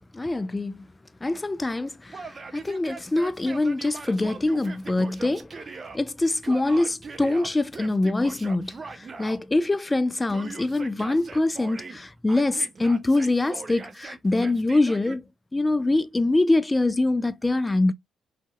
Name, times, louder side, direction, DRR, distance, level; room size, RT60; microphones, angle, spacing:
voice 1, 0.1-0.8 1.2-5.6 5.9-15.2 15.5-17.9, left 2 dB, 15° left, 0.3 m, -24 dB
Yell, 2.1-6.0 6.4-9.4 10.3-12.0 12.3-15.2, right 4 dB, 35° right, 0.6 m, -41 dB
3.1 x 2.6 x 2.3 m
cardioid pair, 90°, 0 cm